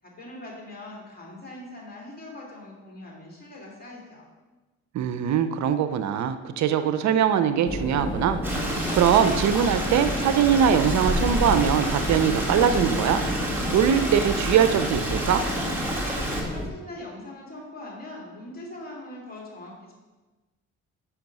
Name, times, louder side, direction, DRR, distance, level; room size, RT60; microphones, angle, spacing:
voice 1, 0.0-4.3 16.5-19.9, left 1 dB, 30° left, -3 dB, 2.8 m, -41 dB
voice 2, 4.9-15.4, right 8 dB, 65° right, 10 dB, 0.5 m, -22 dB
sound 1, 7.7-16.7, left 1 dB, 15° left, 0.9 m, -32 dB
Stream, 8.4-16.4, right 1 dB, 5° right, 1.9 m, -29 dB
6.2 x 5.8 x 5.3 m, 1.2 s
cardioid pair, 90°, 30 cm